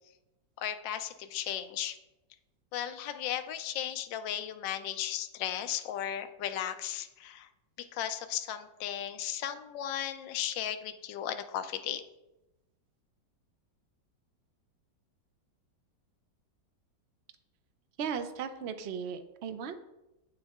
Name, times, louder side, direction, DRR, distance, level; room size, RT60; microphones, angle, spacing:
voice 1, 0.6-2.0 2.7-7.5 7.8-12.0, left 10 dB, 85° left, 8 dB, 1.3 m, -35 dB
voice 2, 18.0-19.8, right 7 dB, 70° right, 8 dB, 0.6 m, -36 dB
8.8 x 7.2 x 3.6 m, 0.96 s
omnidirectional pair, 2.0 m